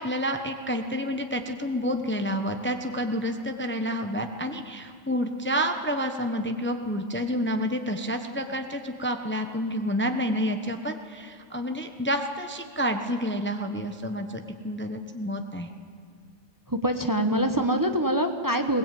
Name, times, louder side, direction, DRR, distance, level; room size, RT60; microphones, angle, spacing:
voice 1, 0.0-15.7, equal, 10° left, 5 dB, 1.0 m, -29 dB
voice 2, 16.7-18.8, right 1 dB, 15° right, 6 dB, 1.2 m, -24 dB
21.5 x 20.0 x 9.2 m, 2.1 s
omnidirectional pair, 1.3 m